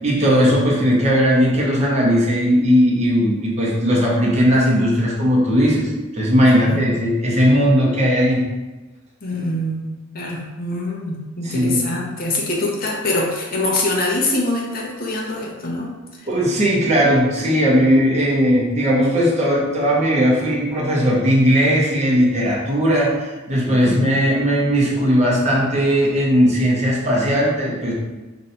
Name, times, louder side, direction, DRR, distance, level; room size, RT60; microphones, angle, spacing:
voice 1, 0.0-8.4 11.5-11.7 16.3-27.9, equal, 35° right, -4 dB, 0.7 m, -17 dB
voice 2, 9.2-16.3 23.7-24.1 24.8-25.0, left 2 dB, 45° left, -2 dB, 0.7 m, -24 dB
2.7 x 2.2 x 4.1 m, 1.2 s
head